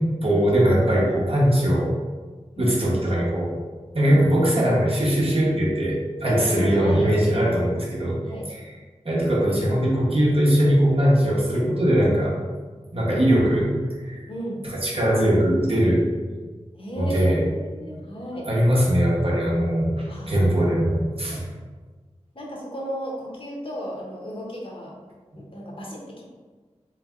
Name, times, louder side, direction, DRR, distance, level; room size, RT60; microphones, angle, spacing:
voice 1, 0.0-1.9 2.6-3.6 3.9-8.6 9.0-12.3 12.9-13.7 14.0-14.2 14.6-16.0 17.0-17.4 18.5-21.5, equal, 50° right, -4 dB, 1.2 m, -21 dB
voice 2, 6.3-7.1 8.2-8.5 14.3-14.7 16.7-18.5 20.1-20.7 21.0-21.1 22.3-25.0 25.3-26.2, equal, 50° left, -3 dB, 1.1 m, -34 dB
3.5 x 3.3 x 3.7 m, 1.4 s
cardioid pair, 40°, 12 cm